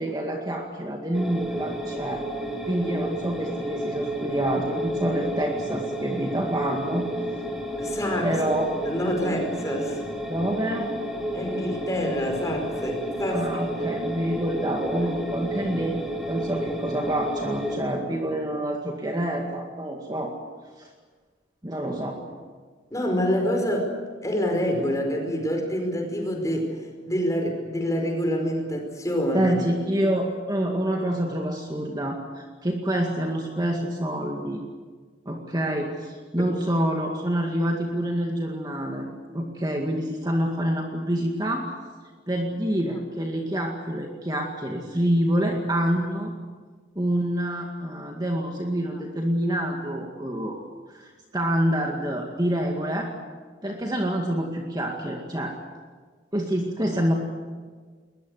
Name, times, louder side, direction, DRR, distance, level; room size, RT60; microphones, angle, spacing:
voice 1, 0.0-2.3 2.7-7.1 8.2-8.7 10.3-10.9 13.3-16.0 16.3-20.3 20.8-20.9 21.6-22.2 29.3-34.6 35.3-39.1 39.3-41.7 42.3-46.3 47.0-50.6 50.9-53.1 53.6-55.6 56.3-57.1, right 1 dB, 20° right, 1 dB, 2.1 m, -27 dB
sound 1, 1.1-17.8, right 1 dB, ahead, 3.9 m, -32 dB
voice 2, 7.8-8.3 8.9-10.1 11.3-13.5 15.0-15.1 22.9-23.9 24.2-26.7 27.1-29.6 36.4-36.5, equal, 20° left, 2 dB, 5.1 m, -26 dB
22.0 x 21.0 x 8.2 m, 1.5 s
head